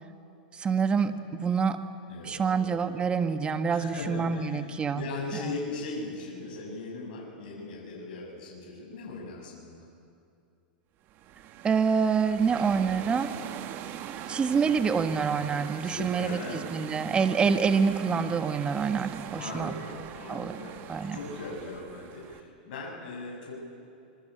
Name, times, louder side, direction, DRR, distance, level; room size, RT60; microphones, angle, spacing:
voice 1, 0.6-1.8 2.2-5.0 11.6-13.3 14.3-16.4 16.7-19.7 20.3-20.5 20.9-21.2, right 6 dB, 20° right, 8 dB, 1.5 m, -26 dB
voice 2, 2.1-2.7 3.7-9.9 15.8-16.7 19.3-23.6, left 3 dB, 65° left, -1 dB, 7.7 m, -39 dB
sound 1, 11.1-22.4, right 10 dB, 40° right, 1.6 m, -41 dB
25.0 x 23.0 x 8.6 m, 2.5 s
hypercardioid pair, 125°, 5 cm